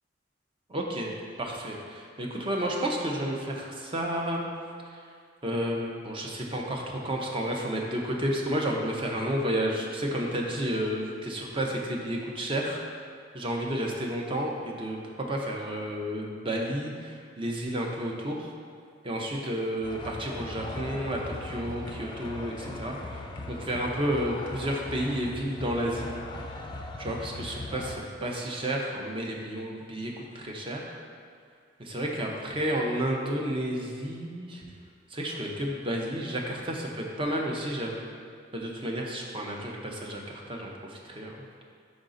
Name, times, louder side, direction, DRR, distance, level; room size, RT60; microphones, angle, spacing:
voice 1, 0.7-1.1 1.4-4.5 4.9-5.0 5.4-12.8 13.3-18.5 19.0-26.1 27.0-31.0 31.8-34.7 35.1-38.1 38.5-41.6, right 1 dB, 25° right, 0 dB, 0.6 m, -31 dB
sound 1, 19.8-28.0, left 2 dB, 25° left, 0.4 m, -39 dB
5.2 x 4.9 x 3.8 m, 2.2 s
head